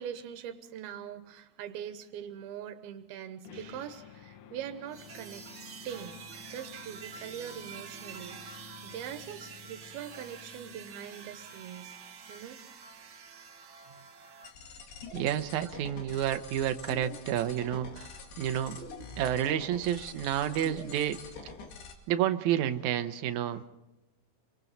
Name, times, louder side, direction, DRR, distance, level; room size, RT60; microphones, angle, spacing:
voice 1, 0.0-5.5 5.8-6.2 6.5-12.0 12.3-12.6 13.9-14.0, right 9 dB, 85° right, 9 dB, 2.9 m, -42 dB
sound 1, 3.5-11.7, left 9 dB, 65° left, 2.4 m, -53 dB
sound 2, 4.9-14.5, right 6 dB, 55° right, 1.4 m, -47 dB
sound 3, 14.4-21.9, left 4 dB, 85° left, 4.2 m, -45 dB
voice 2, 15.1-18.1 18.4-18.8 19.2-21.2 22.1-23.8, right 11 dB, 70° right, 8 dB, 1.9 m, -30 dB
28.0 x 24.0 x 4.1 m, 0.96 s
omnidirectional pair, 4.3 m